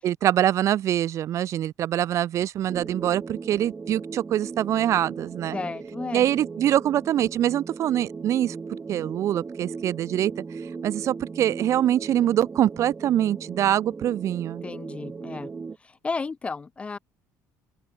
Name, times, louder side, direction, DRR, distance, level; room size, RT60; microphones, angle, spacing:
voice 1, 0.0-5.6 6.1-8.5 8.9-10.3 10.6-14.6, right 11 dB, 50° right, 1.3 m, -24 dB
sound 1, 2.7-15.8, right 5 dB, 20° right, 1.2 m, -38 dB
voice 2, 5.5-6.3 14.6-15.5 15.8-17.0, left 4 dB, 20° left, 0.5 m, -33 dB
open air
cardioid pair, 150°, 7 cm